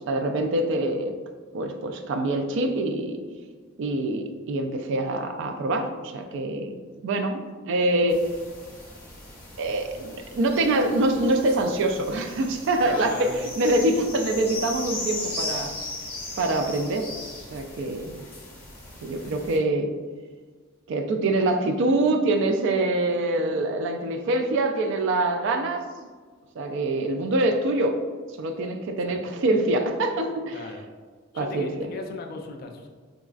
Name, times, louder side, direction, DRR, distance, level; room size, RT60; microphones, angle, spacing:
voice 1, 0.1-1.1 1.5-3.2 3.8-6.8 7.0-8.2 9.6-15.7 16.4-17.1 17.5-18.2 19.0-19.9 20.9-25.8 26.6-28.0 28.4-30.6 31.3-31.9, right 2 dB, 60° right, 5 dB, 0.3 m, -25 dB
sound 1, 8.1-19.6, left 2 dB, 10° left, 0.7 m, -38 dB
voice 2, 12.8-13.3 29.1-29.2 30.5-30.8 31.3-32.9, left 3 dB, 45° left, 3 dB, 0.3 m, -37 dB
4.0 x 2.3 x 2.4 m, 1.5 s
head